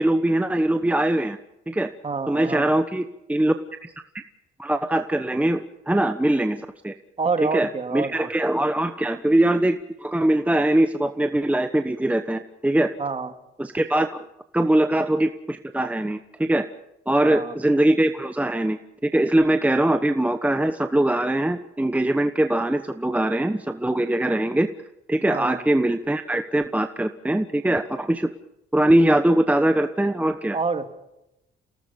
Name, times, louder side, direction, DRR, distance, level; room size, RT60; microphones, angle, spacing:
voice 1, 0.0-1.4 1.7-1.9 2.3-3.5 3.8-3.9 4.6-6.6 6.8-6.9 7.4-12.9 13.6-14.2 14.5-16.6 17.1-24.7 25.1-28.3 28.7-30.6, right 1 dB, 5° right, 8 dB, 1.2 m, -22 dB
voice 2, 2.0-2.7 7.2-8.3 13.0-13.3 17.2-17.5 25.3-25.6 30.5-31.0, right 4 dB, 30° right, 7 dB, 2.6 m, -27 dB
29.0 x 18.5 x 5.5 m, 0.87 s
cardioid pair, 90°, 20 cm